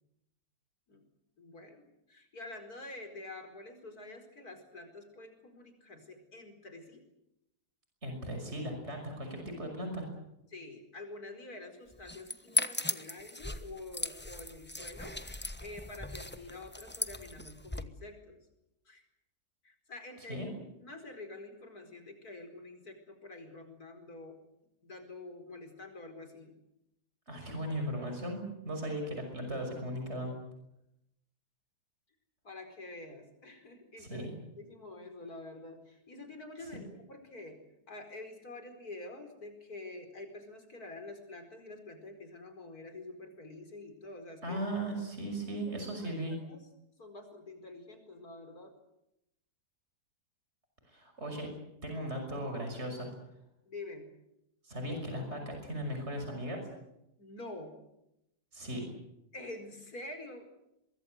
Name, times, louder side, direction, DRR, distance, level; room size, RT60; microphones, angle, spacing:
voice 1, 1.4-7.0 10.5-15.2 15.6-18.5 18.9-19.1 19.6-20.5 20.8-24.4 24.8-26.6 32.4-34.3 34.6-37.6 37.9-44.6 46.0-46.1 46.5-46.6 47.0-48.7 53.7-54.1 57.2-57.7 59.3-60.5, left 2 dB, 65° left, 6 dB, 5.2 m, -47 dB
voice 2, 8.0-10.1 20.3-20.5 27.3-30.3 34.0-34.3 44.4-46.3 50.9-51.5 51.8-53.1 54.6-56.7 58.5-58.8, right 1 dB, 40° right, 4 dB, 6.2 m, -37 dB
sound 1, 11.9-17.8, left 2 dB, 10° left, 0.9 m, -37 dB
23.5 x 23.0 x 7.9 m, 0.84 s
omnidirectional pair, 1.7 m